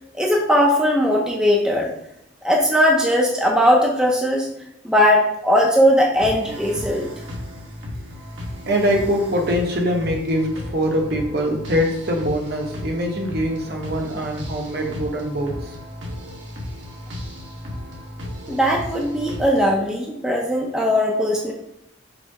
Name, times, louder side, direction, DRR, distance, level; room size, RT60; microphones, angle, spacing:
voice 1, 0.1-1.9 2.4-4.5 4.8-7.1 18.5-21.5, equal, 5° right, -2 dB, 0.5 m, -19 dB
sound 1, 6.1-19.7, left 1 dB, 70° right, 1.3 m, -35 dB
voice 2, 8.7-15.7, equal, 55° right, 1 dB, 1.0 m, -23 dB
5.1 x 2.1 x 4.7 m, 0.80 s
head